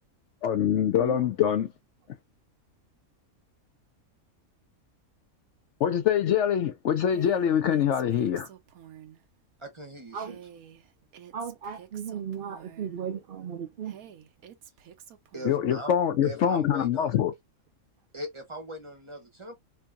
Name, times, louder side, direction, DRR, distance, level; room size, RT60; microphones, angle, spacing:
voice 1, 0.4-1.7 5.8-8.5 15.4-17.3, left 9 dB, 65° left, 0.8 m, -24 dB
Female speech woman speaking, 7.1-9.2 10.1-13.0 13.8-15.7, right 9 dB, 90° right, 1.2 m, -49 dB
voice 2, 9.6-10.4 15.3-15.9 16.2-17.2 18.1-19.6, right 1 dB, 25° right, 0.7 m, -40 dB
voice 3, 11.3-14.0, right 8 dB, 65° right, 0.5 m, -36 dB
4.5 x 2.7 x 2.3 m
omnidirectional pair, 1.5 m